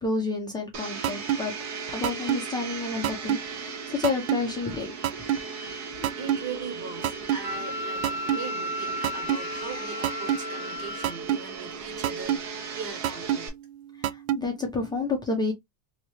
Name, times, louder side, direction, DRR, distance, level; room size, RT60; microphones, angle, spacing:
voice 1, 0.0-1.5 1.9-4.9 6.0-6.1 14.0-15.5, left 3 dB, 10° left, 0.5 m, -30 dB
Domestic sounds home sounds, 0.7-13.5, right 4 dB, 40° right, 0.9 m, -37 dB
sound 1, 1.0-1.4 2.0-2.4 3.0-3.4 4.0-4.4 5.0-5.4 6.0-6.4 7.0-7.4 8.0-8.4 9.0-9.4 10.0-10.4 11.0-11.4 12.0-12.4 13.0-13.4 14.0-14.4, right 11 dB, 90° right, 0.5 m, -24 dB
voice 2, 6.2-13.5, right 6 dB, 60° right, 1.7 m, -40 dB
Wind instrument woodwind instrument, 7.4-11.2, left 2 dB, 20° right, 0.9 m, -34 dB
3.0 x 2.8 x 3.0 m
supercardioid pair, 140°, 41 cm